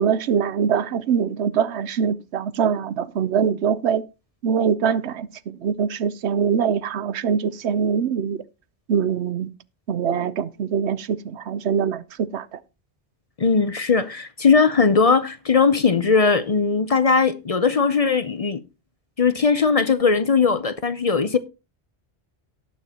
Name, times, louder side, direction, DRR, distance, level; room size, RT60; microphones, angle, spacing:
voice 1, 0.0-4.0 4.4-8.4 8.9-9.5 9.9-12.6, right 7 dB, 85° right, 1.0 m, -23 dB
voice 2, 13.4-18.6 19.2-21.4, left 5 dB, 40° left, 0.6 m, -19 dB
18.5 x 6.6 x 2.9 m
omnidirectional pair, 1.1 m